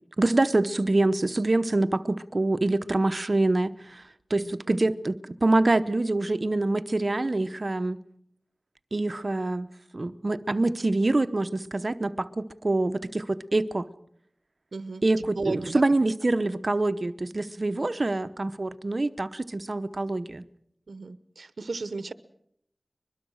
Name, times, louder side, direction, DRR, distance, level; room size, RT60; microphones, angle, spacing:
voice 1, 0.0-4.0 4.3-8.0 8.9-9.7 9.9-13.9 15.0-20.4, right 2 dB, 55° right, 12 dB, 0.8 m, -25 dB
voice 2, 4.4-4.8 14.7-15.8 20.9-22.1, right 3 dB, 90° right, 14 dB, 0.8 m, -35 dB
23.0 x 22.0 x 6.4 m, 0.72 s
wide cardioid pair, 40°, 0 cm